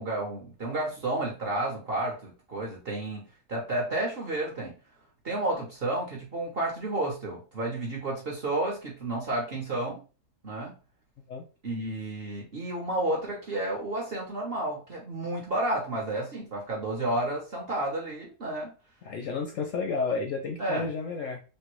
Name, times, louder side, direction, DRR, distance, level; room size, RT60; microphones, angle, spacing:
voice 1, 0.0-4.7 5.2-10.0 10.4-10.7 11.6-18.7 20.6-20.9, right 2 dB, 50° right, -2 dB, 0.7 m, -31 dB
voice 2, 19.0-21.4, left 4 dB, 70° left, 2 dB, 0.8 m, -31 dB
3.2 x 2.2 x 2.9 m, 0.33 s
omnidirectional pair, 1.7 m